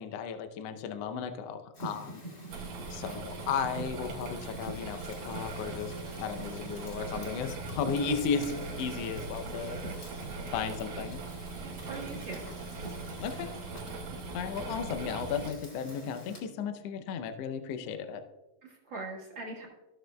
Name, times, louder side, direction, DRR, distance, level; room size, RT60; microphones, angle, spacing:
voice 1, 0.0-2.2 2.9-9.8 10.5-11.2 13.2-13.5 14.3-18.2, left 6 dB, 75° left, 8 dB, 1.4 m, -35 dB
Fire, 1.7-16.4, right 1 dB, 30° left, 2.7 m, -46 dB
sound 1, 2.5-15.5, right 3 dB, 80° right, 2.7 m, -40 dB
voice 2, 11.6-12.4 18.6-19.7, right 3 dB, 45° right, -3 dB, 2.0 m, -41 dB
16.5 x 6.5 x 2.3 m, 1.1 s
omnidirectional pair, 3.6 m